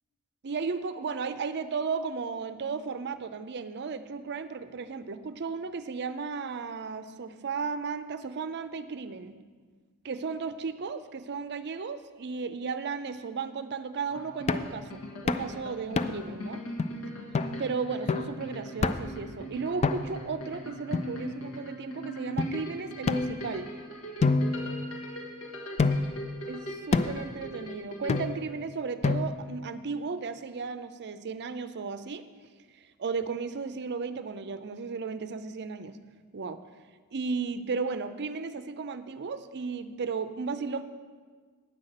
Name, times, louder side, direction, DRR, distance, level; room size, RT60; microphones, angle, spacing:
voice 1, 0.4-9.3 10.0-16.6 17.6-23.7 26.5-32.2 33.0-36.0 36.3-36.6 37.1-40.8, right 5 dB, 50° right, 12 dB, 0.5 m, -34 dB
sound 1, 14.1-28.3, equal, 75° left, 1.7 m, -41 dB
sound 2, 14.5-14.8 15.3-15.5 16.0-16.3 16.8-16.9 17.3-17.6 18.1-18.4 18.8-19.2 19.8-20.3 20.9-21.6 22.4-22.5 23.1-23.8 24.2-25.3 25.8-26.2 26.9-27.3 28.1-28.5 29.0-29.5, left 3 dB, 30° left, 0.3 m, -28 dB
9.6 x 5.7 x 7.7 m, 1.5 s
head